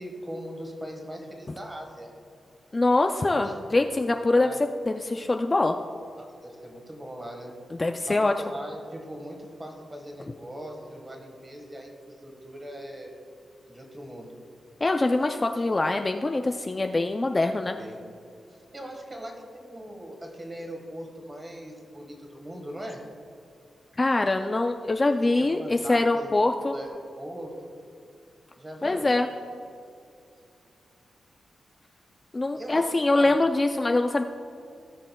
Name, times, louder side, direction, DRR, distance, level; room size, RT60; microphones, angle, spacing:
voice 1, 0.0-2.1 3.2-3.6 4.4-4.6 6.2-7.6 8.1-13.1 13.7-14.3 17.4-17.5 17.8-18.0 18.5-23.0 25.4-26.3 26.7-27.7 28.6-29.1 32.6-33.4, equal, 20° right, 2 dB, 1.4 m, -40 dB
voice 2, 2.7-4.5 4.9-5.8 7.7-8.3 14.8-17.8 24.0-26.8 28.8-29.3 32.3-34.2, left 2 dB, 25° left, 5 dB, 0.3 m, -24 dB
17.0 x 6.4 x 2.2 m, 2.4 s
wide cardioid pair, 125°, 0 cm